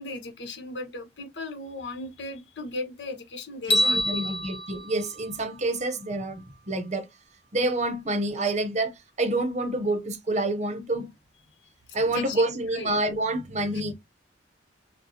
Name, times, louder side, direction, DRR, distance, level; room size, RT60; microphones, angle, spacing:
voice 1, 0.0-4.4 12.1-12.4 12.7-12.9, left 2 dB, 70° left, 1.3 m, -36 dB
sound 1, 3.7-6.0, equal, 30° left, 1.0 m, -27 dB
voice 2, 3.7-7.1 7.5-11.1 11.9-13.9, right 2 dB, 40° right, 0.8 m, -28 dB
6.2 x 2.3 x 2.8 m
head